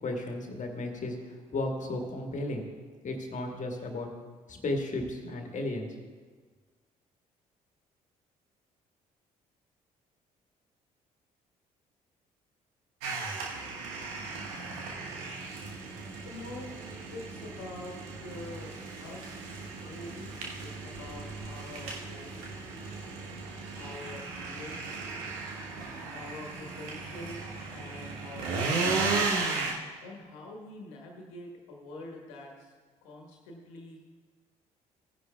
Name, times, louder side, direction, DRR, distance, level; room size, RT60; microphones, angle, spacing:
voice 1, 0.0-2.7 3.0-4.1 4.5-5.9, left 2 dB, 40° left, 3 dB, 1.7 m, -34 dB
sound 1, 13.0-29.7, right 3 dB, 75° right, 1.2 m, -35 dB
voice 2, 16.2-16.7 17.1-18.7 19.0-19.5 19.8-22.5 23.8-24.9 26.1-27.4 27.7-28.9 30.0-32.7 33.0-34.1, left 2 dB, 70° left, 1 dB, 1.5 m, -45 dB
16.5 x 10.0 x 2.3 m, 1.5 s
figure-of-eight pair, 45°, 19 cm